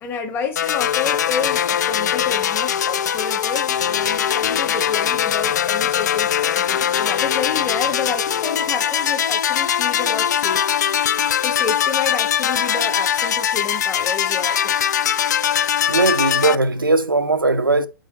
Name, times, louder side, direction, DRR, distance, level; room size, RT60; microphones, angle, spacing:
voice 1, 0.0-10.7 11.4-14.8, left 6 dB, 20° left, 0.9 m, -29 dB
sound 1, 0.6-16.6, left 9 dB, 55° left, 0.4 m, -21 dB
voice 2, 15.9-17.9, right 3 dB, 85° right, 0.7 m, -18 dB
6.4 x 4.8 x 3.9 m
figure-of-eight pair, 115°, 11 cm